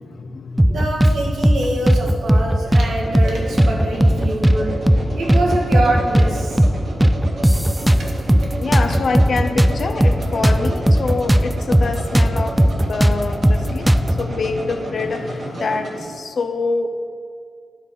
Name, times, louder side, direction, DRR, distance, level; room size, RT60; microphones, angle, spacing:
voice 1, 0.0-0.9 4.2-4.6 5.1-5.4 8.6-16.9, left 4 dB, 65° left, 7 dB, 0.6 m, -26 dB
sound 1, 0.6-1.2 1.4-1.6 1.9-2.9 3.1-3.3 3.6-4.6 4.9-5.0 5.3-6.3 6.6-6.7 7.0-8.5 8.7-11.5 11.7-11.9 12.1-14.2, equal, 10° right, 0.4 m, -15 dB
sound 2, 0.7-16.1, right 2 dB, 60° right, 1.2 m, -33 dB
voice 2, 0.7-6.6 8.0-8.1, right 1 dB, 80° right, -2 dB, 1.5 m, -24 dB
10.0 x 3.7 x 5.9 m, 2.2 s
cardioid pair, 55°, 0 cm